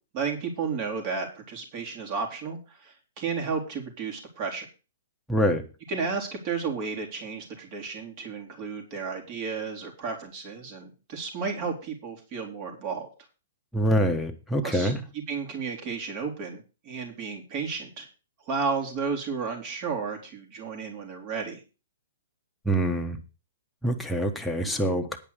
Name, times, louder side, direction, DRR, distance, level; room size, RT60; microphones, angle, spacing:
voice 1, 0.1-4.7 5.9-13.1 14.6-14.9 15.3-18.1 18.5-21.6, right 5 dB, 35° right, 1 dB, 3.9 m, -33 dB
voice 2, 5.3-5.6 13.7-15.0 22.6-23.2 23.8-25.2, right 1 dB, ahead, 2 dB, 1.5 m, -25 dB
10.0 x 5.4 x 8.3 m, 0.32 s
hypercardioid pair, 145°, 0 cm